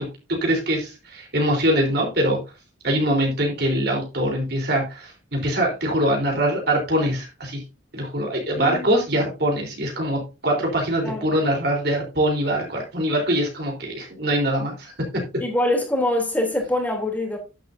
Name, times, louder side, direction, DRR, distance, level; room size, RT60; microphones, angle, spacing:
voice 1, 0.3-2.4 2.8-7.6 7.9-14.9, right 1 dB, 55° right, 3.9 m, -23 dB
voice 2, 15.4-17.4, left 1 dB, 10° left, 3.2 m, -24 dB
11.5 x 10.5 x 2.7 m
head